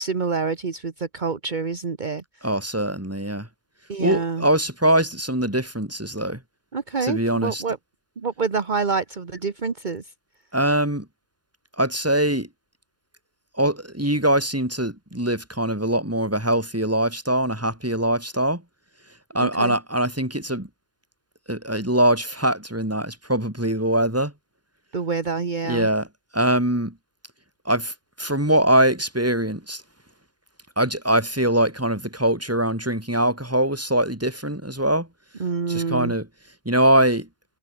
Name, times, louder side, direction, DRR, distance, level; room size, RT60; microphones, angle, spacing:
voice 1, 0.0-2.2 3.9-4.5 6.7-7.8 8.2-10.0 19.4-19.8 24.9-25.9 35.4-36.1, right 5 dB, 45° right, 1.5 m, -27 dB
voice 2, 2.4-3.5 4.0-6.4 7.0-7.6 10.5-11.1 11.8-12.5 13.6-18.6 19.3-20.7 21.5-24.3 25.6-26.1 26.3-26.9 27.7-29.8 30.8-35.1 35.7-36.3 36.7-37.3, right 1 dB, 15° right, 3.6 m, -22 dB
omnidirectional pair, 1.1 m